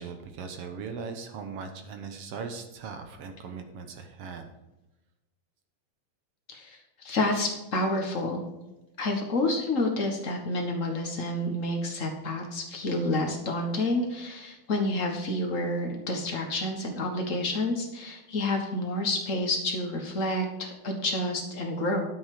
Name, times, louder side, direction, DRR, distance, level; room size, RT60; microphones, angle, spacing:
voice 1, 0.0-4.5, right 5 dB, 65° right, 6 dB, 1.7 m, -39 dB
voice 2, 6.5-8.4 9.0-22.0, left 1 dB, 65° left, 1 dB, 0.7 m, -29 dB
9.6 x 7.8 x 4.9 m, 1.0 s
omnidirectional pair, 3.6 m